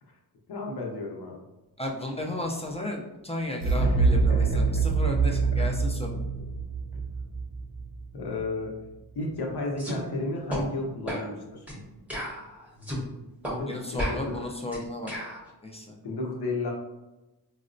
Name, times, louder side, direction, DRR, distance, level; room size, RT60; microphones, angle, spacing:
voice 1, 0.5-1.4 3.8-4.8 5.3-5.7 8.1-8.7 9.1-11.6 13.4-14.3 16.0-16.7, left 2 dB, 70° left, -1 dB, 0.8 m, -33 dB
voice 2, 1.8-6.1 13.7-15.1 15.6-15.9, left 1 dB, 15° left, -1 dB, 0.3 m, -34 dB
sound 1, 3.6-8.5, right 4 dB, 55° right, 0.6 m, -25 dB
sound 2, 9.8-10.0 10.5-10.6 11.1-11.3 11.7-11.8 12.1-13.0 13.4-13.6 14.0-15.4, equal, 5° right, 0.8 m, -33 dB
4.1 x 2.0 x 2.5 m, 1.0 s
wide cardioid pair, 100°, 41 cm